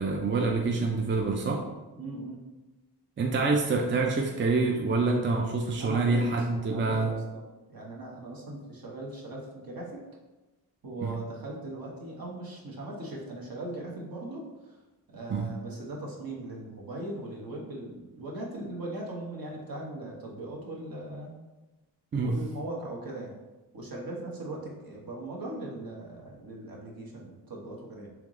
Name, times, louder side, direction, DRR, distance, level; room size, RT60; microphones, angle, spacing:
voice 1, 0.0-1.6 3.2-7.1 11.0-11.2 15.3-15.5 22.1-22.4, right 3 dB, 30° right, 1 dB, 0.4 m, -26 dB
voice 2, 2.0-2.4 5.8-6.2 6.6-10.0 10.8-14.8 15.1-21.3 22.2-23.3 23.7-28.1, right 2 dB, 55° right, -2 dB, 1.1 m, -39 dB
3.5 x 3.0 x 3.6 m, 1.1 s
cardioid pair, 80°, 41 cm